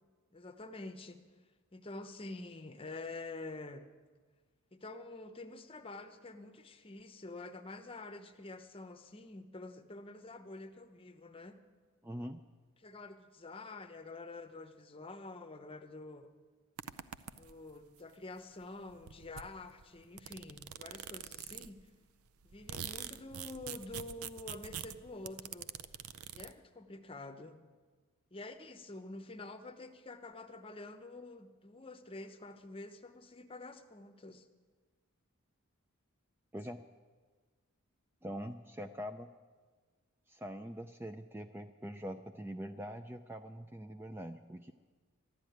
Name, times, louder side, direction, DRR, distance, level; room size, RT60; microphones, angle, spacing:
voice 1, 0.3-1.2 1.7-3.9 4.7-11.6 12.8-16.3 17.3-21.8 22.4-25.7 26.3-27.6 28.3-34.5, left 2 dB, 25° left, 7 dB, 0.8 m, -47 dB
voice 2, 12.0-12.4 36.5-36.8 38.2-39.3 40.3-44.7, equal, 10° right, 7 dB, 0.4 m, -43 dB
sound 1, 16.8-17.7 18.6-18.7 18.9-21.8 22.3-26.5, right 9 dB, 85° right, 0.6 m, -45 dB
12.0 x 12.0 x 9.3 m, 1.5 s
head